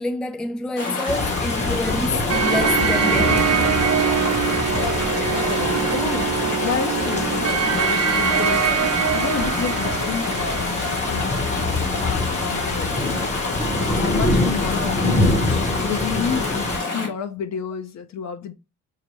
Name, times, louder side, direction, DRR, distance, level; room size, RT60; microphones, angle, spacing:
voice 1, 0.0-3.6, left 2 dB, 5° left, 0.3 m, -28 dB
Chatter / Stream, 0.8-17.1, left 3 dB, 85° left, 2.7 m, -27 dB
sound 1, 1.1-16.8, left 2 dB, 25° left, 0.9 m, -26 dB
sound 2, 2.3-11.1, right 7 dB, 55° right, 0.8 m, -23 dB
voice 2, 5.9-8.7 9.1-11.4 12.0-13.2 13.8-15.4 15.8-18.5, left 7 dB, 60° left, 0.8 m, -30 dB
6.6 x 2.2 x 3.0 m
cardioid pair, 90°, 30 cm